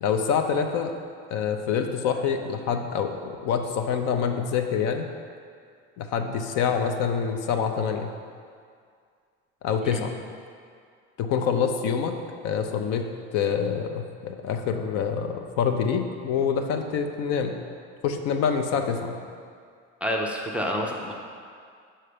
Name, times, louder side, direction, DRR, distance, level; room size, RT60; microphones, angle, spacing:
voice 1, 0.0-0.9 1.3-5.1 6.0-8.1 9.6-10.1 11.2-12.2 12.4-13.1 13.3-17.6 18.0-19.2, left 6 dB, 60° left, 6 dB, 0.6 m, -26 dB
voice 2, 20.0-21.1, equal, 5° right, -1 dB, 0.4 m, -28 dB
5.7 x 4.3 x 5.0 m, 2.2 s
cardioid pair, 130°, 30 cm